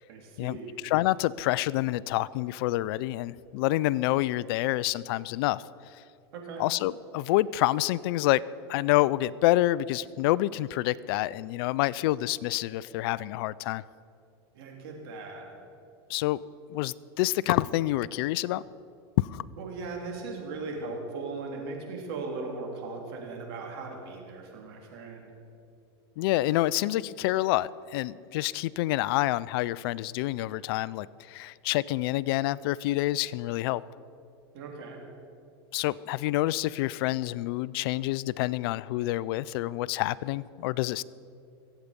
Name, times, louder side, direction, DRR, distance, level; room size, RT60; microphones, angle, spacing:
voice 1, 0.1-0.7 6.3-6.6 14.5-15.5 19.6-25.3 34.5-35.0, right 3 dB, 70° right, 0 dB, 3.5 m, -38 dB
voice 2, 0.8-5.6 6.6-8.4 8.7-13.8 16.1-16.4 16.7-18.6 19.2-19.4 26.2-33.8 35.7-41.0, left 16 dB, 65° left, 20 dB, 0.4 m, -27 dB
23.5 x 8.3 x 5.2 m, 2.6 s
supercardioid pair, 120°, 14 cm